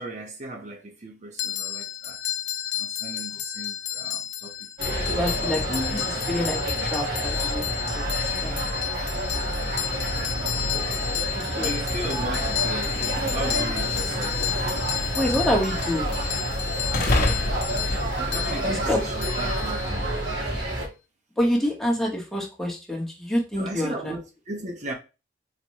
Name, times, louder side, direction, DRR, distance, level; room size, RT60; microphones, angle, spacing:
voice 1, 0.0-2.2 2.8-4.6 4.9-5.1 5.7-6.0 8.5-8.9 9.8-10.6 11.1-13.0 13.3-14.5 18.2-20.1 23.6-24.9, right 1 dB, 40° right, 0.7 m, -37 dB
sound 1, 1.4-20.2, left 12 dB, 70° left, 0.4 m, -32 dB
sound 2, 4.8-20.9, right 1 dB, 65° right, 1.9 m, -29 dB
voice 2, 5.0-5.7 6.3-7.7 7.9-8.6 11.4-11.8 15.1-16.2 18.6-19.0 21.4-24.2, equal, ahead, 0.9 m, -27 dB
sound 3, 11.8-19.6, left 2 dB, 50° left, 0.7 m, -32 dB
4.1 x 2.2 x 4.5 m
head